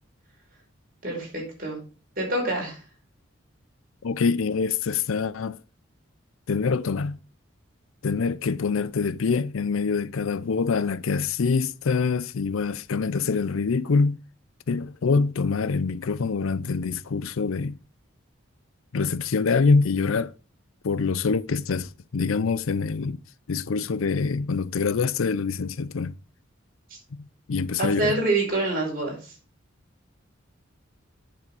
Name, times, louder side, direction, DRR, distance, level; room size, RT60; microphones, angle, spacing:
voice 1, 1.0-1.8 2.2-2.8 26.9-27.0 27.8-29.3, right 2 dB, 45° right, 5.1 m, -26 dB
voice 2, 4.0-5.6 6.5-7.2 8.0-14.2 14.7-17.8 18.9-20.3 20.8-23.2 23.5-26.2 27.1-28.2, left 4 dB, 75° left, 0.5 m, -25 dB
8.4 x 7.2 x 4.8 m
head